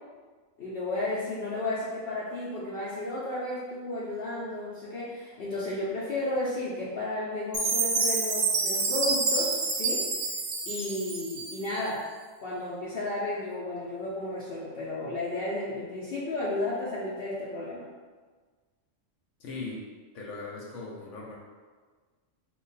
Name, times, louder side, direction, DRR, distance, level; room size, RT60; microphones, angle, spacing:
voice 1, 0.6-10.1 10.7-12.0 12.4-17.8, left 2 dB, 60° left, -8 dB, 0.7 m, -33 dB
Chime, 7.5-11.8, right 3 dB, 65° right, 0.7 m, -28 dB
voice 2, 19.4-19.9 20.1-21.4, left 3 dB, 85° left, -3 dB, 1.0 m, -39 dB
3.0 x 2.2 x 3.9 m, 1.4 s
omnidirectional pair, 1.3 m